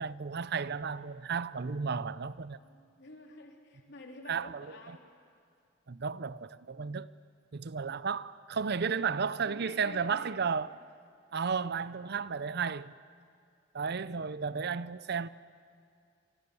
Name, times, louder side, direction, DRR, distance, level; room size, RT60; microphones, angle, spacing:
voice 1, 0.0-2.6 4.3-4.7 5.9-7.1 7.5-10.8 11.3-12.9 13.7-15.3, right 5 dB, 60° right, 0.7 m, -33 dB
voice 2, 2.6-5.0 9.0-10.4, left 1 dB, 65° left, 3.7 m, -50 dB
28.0 x 23.5 x 7.1 m
head